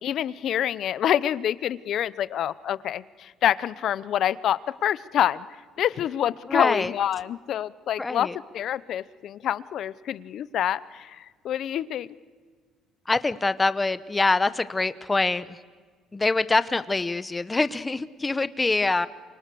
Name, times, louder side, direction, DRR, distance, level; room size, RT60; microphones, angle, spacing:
voice 1, 0.0-5.5 5.8-8.3 8.5-12.1, left 10 dB, 60° left, 18 dB, 0.8 m, -27 dB
voice 2, 6.5-6.9 8.0-8.4 13.1-15.6 16.1-19.1, left 3 dB, 15° left, 15 dB, 1.0 m, -24 dB
28.5 x 25.5 x 6.9 m, 1.5 s
cardioid pair, 125°, 0 cm